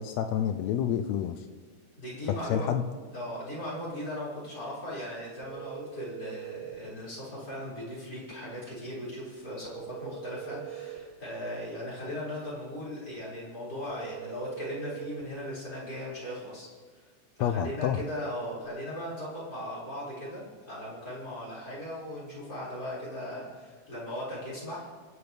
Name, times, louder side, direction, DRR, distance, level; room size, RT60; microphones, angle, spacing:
voice 1, 0.0-1.4 2.5-2.8 17.4-18.0, left 9 dB, 85° left, 8 dB, 1.5 m, -28 dB
voice 2, 2.0-16.7 16.9-17.0 17.4-24.9, left 1 dB, 30° left, -8 dB, 6.4 m, -38 dB
sound 1, 5.4-6.8 9.6-11.1 13.9-15.3 18.1-18.6, right 9 dB, 20° right, 3.0 m, -41 dB
30.0 x 11.0 x 3.5 m, 1.5 s
omnidirectional pair, 3.8 m